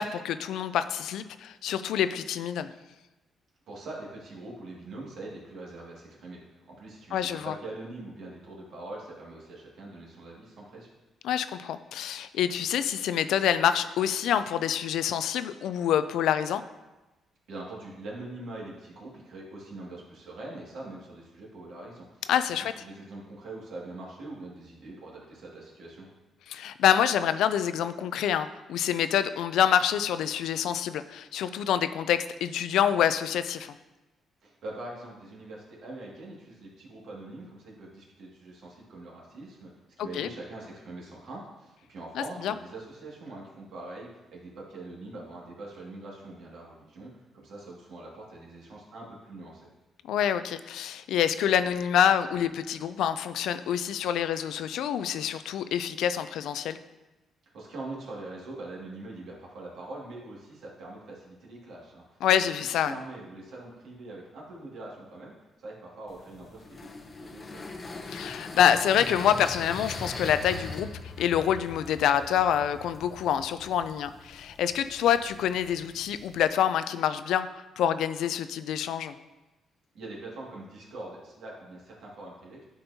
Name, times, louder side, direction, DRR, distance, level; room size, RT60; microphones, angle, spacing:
voice 1, 0.0-2.7 7.1-7.5 11.2-16.6 22.3-22.7 26.5-33.8 40.0-40.3 42.2-42.5 50.1-56.8 62.2-62.9 68.1-70.9 71.2-77.5 77.8-79.2, left 9 dB, 80° left, 12 dB, 0.3 m, -26 dB
voice 2, 3.7-10.9 17.5-22.2 22.8-26.1 34.4-39.7 40.0-49.7 57.5-62.2 62.6-67.7 79.9-82.6, right 2 dB, 70° right, -4 dB, 2.0 m, -43 dB
sound 1, 66.1-76.5, left 3 dB, 35° left, 0.7 m, -42 dB
10.0 x 4.3 x 2.7 m, 1.1 s
cardioid pair, 90°, 0 cm